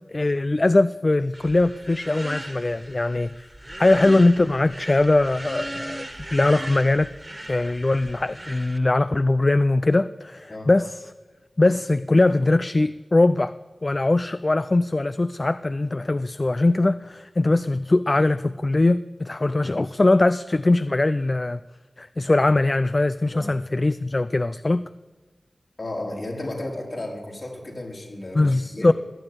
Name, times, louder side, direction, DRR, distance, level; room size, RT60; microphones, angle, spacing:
voice 1, 0.1-3.5 3.8-6.1 6.3-7.1 7.5-11.0 11.6-13.6 13.8-21.6 22.0-24.8 28.3-28.9, left 2 dB, 40° left, 14 dB, 0.4 m, -21 dB
sound 1, 1.3-8.8, right 1 dB, 20° right, 1.7 m, -38 dB
voice 2, 25.8-28.9, left 1 dB, 60° left, -2 dB, 4.5 m, -33 dB
20.5 x 8.7 x 8.0 m, 1.3 s
cardioid pair, 45°, 0 cm